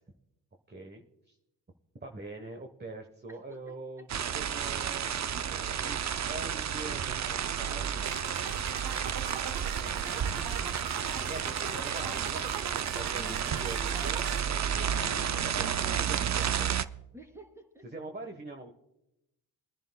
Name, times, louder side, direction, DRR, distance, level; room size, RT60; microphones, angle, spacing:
voice 1, 0.7-1.4 2.0-8.1 11.1-16.8 17.8-18.7, right 2 dB, 20° right, 4 dB, 1.2 m, -44 dB
voice 2, 3.3-4.2 9.8-11.0 11.3-12.1 13.1-14.6 17.1-17.8, right 1 dB, 5° right, 2 dB, 3.3 m, -52 dB
sound 1, 4.1-16.9, right 8 dB, 40° right, 0.5 m, -31 dB
sound 2, 8.1-14.4, right 6 dB, 55° right, 1.1 m, -41 dB
23.5 x 10.5 x 2.3 m, 0.87 s
cardioid pair, 60°, 44 cm